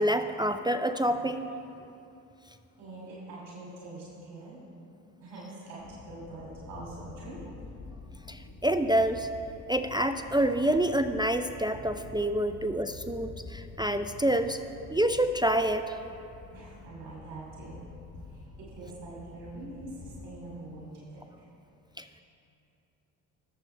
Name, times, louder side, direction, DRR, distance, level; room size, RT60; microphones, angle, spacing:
voice 1, 0.0-1.5 8.3-9.3 9.7-14.6 14.9-15.9 22.0-22.1, right 1 dB, 10° right, 8 dB, 0.4 m, -27 dB
voice 2, 2.8-4.6 5.2-7.5 16.5-17.8 18.7-21.2, right 2 dB, 75° right, -6 dB, 2.8 m, -44 dB
sound 1, 5.8-20.3, left 3 dB, 45° left, 1.1 m, -47 dB
19.5 x 7.4 x 3.3 m, 2.7 s
hypercardioid pair, 55°, 43 cm